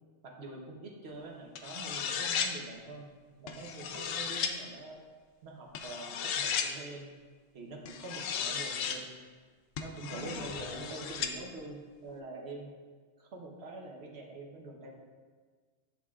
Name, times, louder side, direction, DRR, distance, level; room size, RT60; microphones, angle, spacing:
voice 1, 0.2-3.1 3.4-5.0 5.4-7.1 7.5-9.1 9.8-12.7 13.2-14.9, right 2 dB, 55° right, 0 dB, 1.2 m, -45 dB
sound 1, 1.5-2.5 3.5-4.5 5.7-6.7 7.9-9.0 9.8-11.3, left 7 dB, 80° left, 1.0 m, -35 dB
8.2 x 7.1 x 2.4 m, 1.5 s
omnidirectional pair, 1.3 m